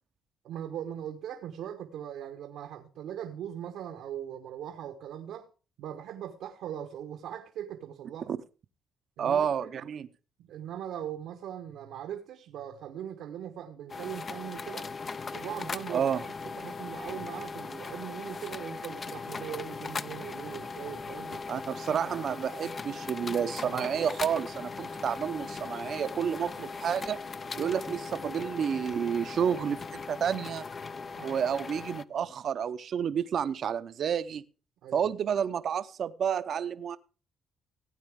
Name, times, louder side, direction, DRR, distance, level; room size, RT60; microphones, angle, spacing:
voice 1, 0.4-5.5 5.8-8.3 9.2-9.7 10.4-14.9 15.3-16.1 16.4-21.4 21.9-22.0 31.1-31.4 34.8-35.1, right 10 dB, 85° right, 1.2 m, -40 dB
voice 2, 9.2-10.1 15.9-16.2 21.5-27.2 27.6-30.6 31.2-34.4 34.9-37.0, right 8 dB, 60° right, 0.7 m, -30 dB
sound 1, 13.9-32.0, left 4 dB, 40° left, 0.5 m, -39 dB
16.5 x 9.0 x 3.6 m
cardioid pair, 90°, 0 cm